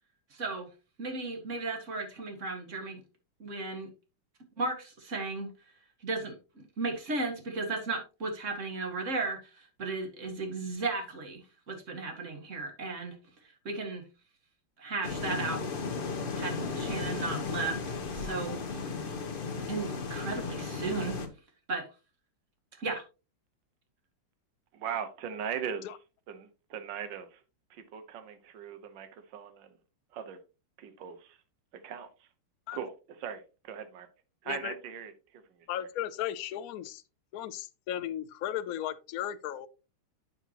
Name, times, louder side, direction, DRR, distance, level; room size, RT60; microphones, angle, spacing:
voice 1, 0.3-0.7 1.0-3.0 3.4-3.9 4.6-5.5 6.0-13.2 13.7-14.0 14.8-15.6 16.3-17.8 18.1-18.6 19.0-19.1 19.7-21.2 21.7-21.9 22.8-23.0, right 3 dB, 35° right, 2.1 m, -35 dB
sound 1, 15.0-21.3, left 4 dB, 40° left, 0.8 m, -35 dB
voice 2, 24.7-25.9 26.3-27.4 27.7-29.7 30.1-30.4 30.8-31.4 31.7-32.3 32.7-32.9 33.2-34.1 34.4-35.4, right 8 dB, 60° right, 1.6 m, -39 dB
voice 3, 35.7-37.0 37.3-39.7, left 11 dB, 85° left, 0.7 m, -35 dB
9.0 x 7.0 x 2.9 m
omnidirectional pair, 2.4 m